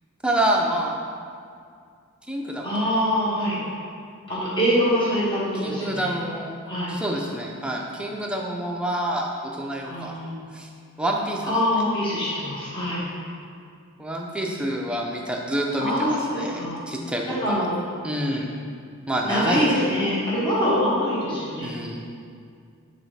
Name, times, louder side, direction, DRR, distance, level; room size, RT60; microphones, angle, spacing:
voice 1, 0.2-0.9 2.3-2.7 2.9-3.0 5.6-6.5 6.9-10.1 10.5-10.7 11.0-11.5 14.0-17.7 18.0-18.5 19.1-19.7 21.6-22.0, right 1 dB, 5° right, -1 dB, 0.5 m, -27 dB
voice 2, 2.6-3.6 4.3-6.1 6.6-6.9 9.8-10.4 11.5-13.0 15.8-16.8 17.4-17.7 19.2-21.7, equal, 25° left, -9 dB, 1.5 m, -24 dB
8.5 x 4.0 x 3.4 m, 2.3 s
head